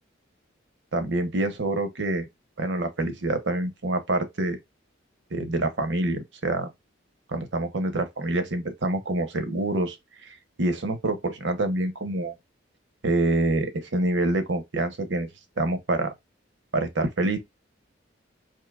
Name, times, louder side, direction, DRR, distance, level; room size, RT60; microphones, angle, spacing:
voice 1, 0.9-2.3 2.6-4.6 5.3-6.7 7.3-10.0 10.2-12.3 13.0-15.3 15.6-16.1 16.7-17.4, right 2 dB, 65° right, 0.9 m, -26 dB
4.5 x 2.8 x 2.3 m
head